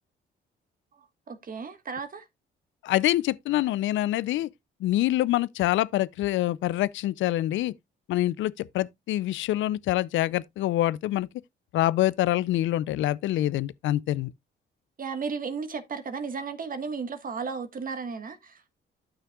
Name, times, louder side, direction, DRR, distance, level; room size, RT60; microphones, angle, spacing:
voice 1, 0.9-2.3 15.0-18.6, right 5 dB, 45° right, 1.5 m, -34 dB
voice 2, 2.8-4.5 4.8-7.7 8.1-11.3 11.7-14.3, left 14 dB, 75° left, 0.4 m, -25 dB
12.5 x 5.7 x 2.3 m
cardioid pair, 90°, 20 cm